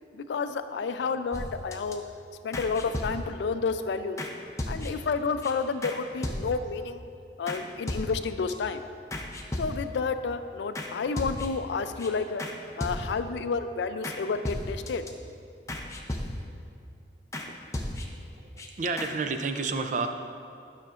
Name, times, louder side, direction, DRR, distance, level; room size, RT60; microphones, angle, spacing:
voice 1, 0.1-2.0 2.4-4.2 4.7-7.0 7.4-8.8 9.6-12.4 12.8-15.1, left 4 dB, 80° left, 10 dB, 0.4 m, -30 dB
sound 1, 1.3-1.9 2.5-3.5 4.2-4.3 4.6-5.1 5.4-5.5 5.8-6.0 6.2-6.8 7.5-7.6 7.9-8.5 9.1-10.0 10.7-10.9 11.2-11.7 12.0-12.1 12.4-12.5 12.8-13.3 14.0-14.2 14.4-15.1 15.7-16.6 17.3-17.5 17.7-18.3 18.6-18.7 19.0-19.1, left 1 dB, 15° left, 0.5 m, -35 dB
voice 2, 18.3-20.1, right 4 dB, 45° right, 6 dB, 0.4 m, -30 dB
11.5 x 5.8 x 2.5 m, 2.4 s
head